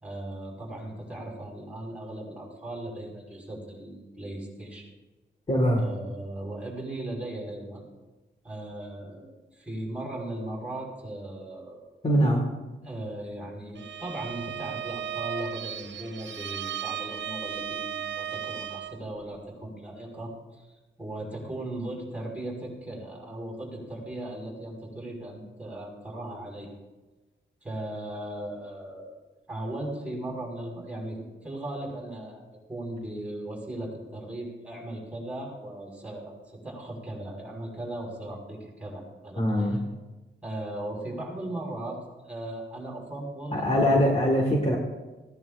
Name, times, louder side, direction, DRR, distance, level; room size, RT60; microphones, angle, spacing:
voice 1, 0.0-4.9 5.8-7.8 8.4-11.8 12.8-20.7 21.0-26.7 27.6-29.1 29.5-39.8 40.4-42.0 42.2-43.8 44.0-44.2, right 1 dB, 5° right, -3 dB, 5.4 m, -37 dB
voice 2, 5.5-5.8 12.0-12.5 39.4-39.8 43.5-44.8, equal, 30° left, 0 dB, 1.8 m, -22 dB
Bowed string instrument, 13.7-19.0, right 10 dB, 65° right, 0.5 m, -35 dB
19.5 x 16.5 x 2.6 m, 1.2 s
wide cardioid pair, 135°, 20 cm